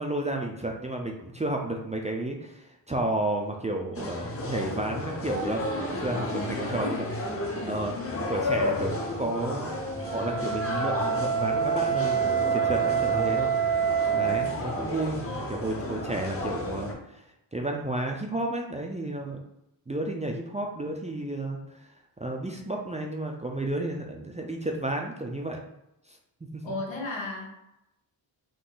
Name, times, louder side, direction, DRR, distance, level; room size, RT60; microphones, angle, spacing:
voice 1, 0.0-7.1 7.7-8.0 8.3-9.7 10.1-13.5 13.8-17.2 17.5-19.4 19.9-21.6 22.2-25.6 26.1-26.2 26.5-26.6, right 1 dB, 15° right, 1 dB, 0.3 m, -32 dB
sound 1, 3.9-16.9, left 1 dB, 30° left, 0.7 m, -33 dB
voice 2, 5.9-7.0 7.9-8.1 14.1-14.4 26.6-27.5, left 3 dB, 85° left, 0 dB, 1.1 m, -36 dB
Wind instrument woodwind instrument, 9.9-14.6, right 7 dB, 65° right, 0.6 m, -26 dB
3.9 x 2.7 x 3.8 m, 0.86 s
wide cardioid pair, 135°, 45 cm